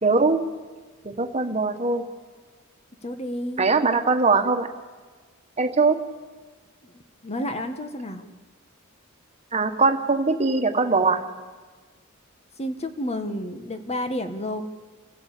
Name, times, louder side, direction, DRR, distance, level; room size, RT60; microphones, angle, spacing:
voice 1, 0.0-0.4 1.0-2.0 3.6-4.7 5.6-6.0 9.5-11.2, right 4 dB, 30° right, 5 dB, 1.6 m, -21 dB
voice 2, 3.0-3.7 6.8-6.9 7.2-8.2 12.6-14.6, left 1 dB, 30° left, 8 dB, 1.6 m, -30 dB
29.0 x 14.5 x 8.6 m, 1.4 s
head